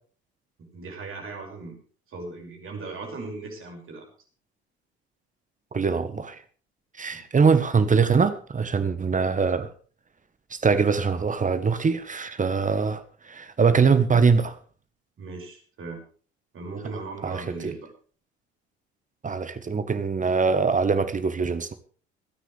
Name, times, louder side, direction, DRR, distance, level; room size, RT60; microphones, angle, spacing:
voice 1, 0.6-1.8 2.1-4.1 7.1-7.2 15.2-16.0 16.5-17.9, right 3 dB, 40° right, 6.2 m, -38 dB
voice 2, 5.7-6.4 7.0-9.7 10.5-13.0 13.3-14.6 17.2-17.7 19.2-21.7, right 5 dB, 25° right, 1.4 m, -22 dB
26.0 x 9.9 x 3.4 m
figure-of-eight pair, 60°, 32 cm